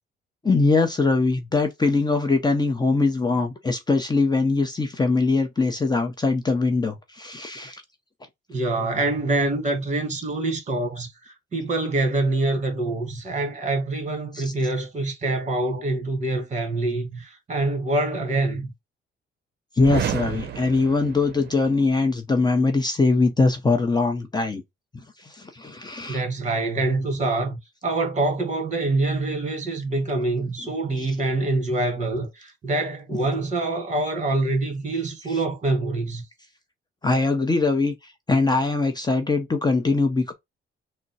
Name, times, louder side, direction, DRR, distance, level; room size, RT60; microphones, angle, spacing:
voice 1, 0.4-7.8 14.3-14.5 19.8-24.6 25.2-26.2 31.0-31.1 33.1-33.2 35.3-35.4 37.0-40.3, left 3 dB, 20° left, 0.7 m, -22 dB
voice 2, 8.5-18.7 26.1-36.2, right 2 dB, 35° right, 1.7 m, -25 dB
sound 1, 19.8-21.8, right 10 dB, 55° right, 0.6 m, -31 dB
3.7 x 2.2 x 4.1 m
cardioid pair, 90°, 20 cm